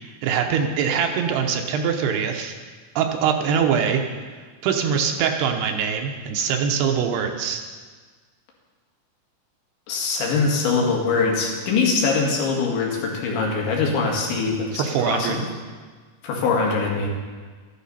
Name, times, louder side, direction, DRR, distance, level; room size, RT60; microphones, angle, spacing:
voice 1, 0.0-2.5 3.0-4.0 4.6-7.6 14.8-15.4, right 7 dB, 75° right, 4 dB, 2.8 m, -23 dB
voice 2, 9.9-15.4 16.2-17.1, left 4 dB, 90° left, -1 dB, 4.5 m, -23 dB
13.5 x 11.5 x 5.6 m, 1.5 s
omnidirectional pair, 5.1 m